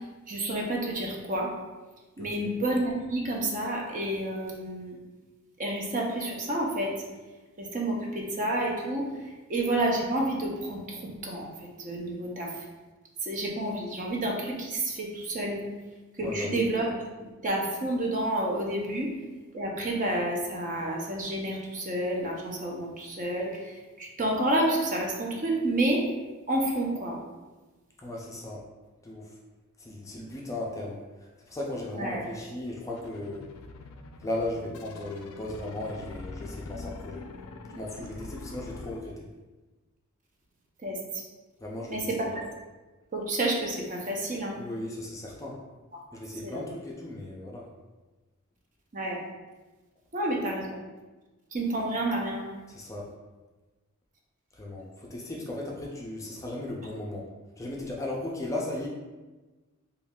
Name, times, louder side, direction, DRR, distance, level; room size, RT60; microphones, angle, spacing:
voice 1, 0.3-1.5 2.2-5.0 5.6-6.9 7.6-9.1 9.5-12.6 13.2-15.6 16.2-16.8 17.2-19.1 19.5-26.0 26.5-27.2 31.9-32.2 40.8-41.0 41.9-42.5 43.1-44.6 46.4-46.6 48.9-49.2 50.1-50.8 51.5-52.4, right 1 dB, 40° right, -1 dB, 0.6 m, -29 dB
voice 2, 2.2-2.5 16.2-16.6 28.0-28.6 29.0-29.3 29.8-31.0 31.5-33.5 34.2-37.2 37.7-39.3 41.6-42.3 44.6-45.6 46.1-47.7 52.7-53.1 54.5-57.2 57.6-58.9, left 1 dB, 15° left, -2 dB, 0.4 m, -36 dB
sound 1, 33.0-39.0, left 3 dB, 85° left, 0.3 m, -43 dB
3.0 x 2.3 x 3.5 m, 1.2 s
head